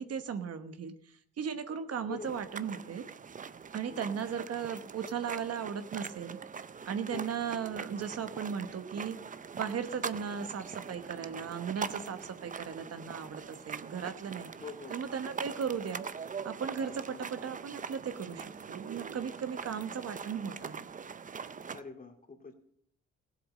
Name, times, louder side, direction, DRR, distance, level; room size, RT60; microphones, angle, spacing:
voice 1, 0.0-3.0 3.7-6.4 6.8-9.2 9.5-14.5 14.9-16.0 16.4-20.9, right 7 dB, 55° right, 9 dB, 1.1 m, -37 dB
voice 2, 2.1-2.4 3.9-4.2 7.1-7.3 14.6-15.0 16.9-17.2 21.7-22.5, left 4 dB, 30° left, 4 dB, 2.3 m, -45 dB
sound 1, 2.2-21.8, right 6 dB, 25° right, 0.6 m, -43 dB
16.0 x 8.1 x 6.3 m, 0.67 s
cardioid pair, 90°, 30 cm